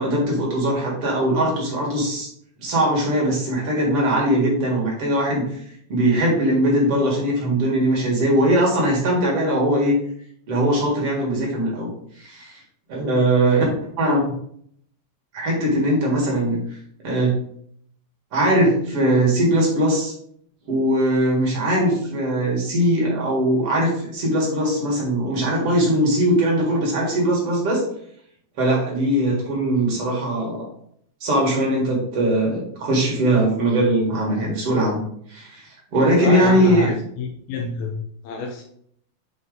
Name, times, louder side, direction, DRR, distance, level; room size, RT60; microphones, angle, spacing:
voice 1, 0.0-2.3 2.6-5.6 5.9-9.9 10.5-11.9 12.2-12.6 12.9-14.2 15.3-16.6 17.0-17.3 18.3-20.1 20.7-27.8 28.6-30.6 31.2-35.0 35.3-36.9, right 1 dB, 50° right, -3 dB, 1.7 m, -20 dB
voice 2, 36.2-38.6, left 4 dB, 85° left, 2 dB, 2.1 m, -28 dB
7.3 x 4.0 x 3.9 m, 0.67 s
omnidirectional pair, 5.1 m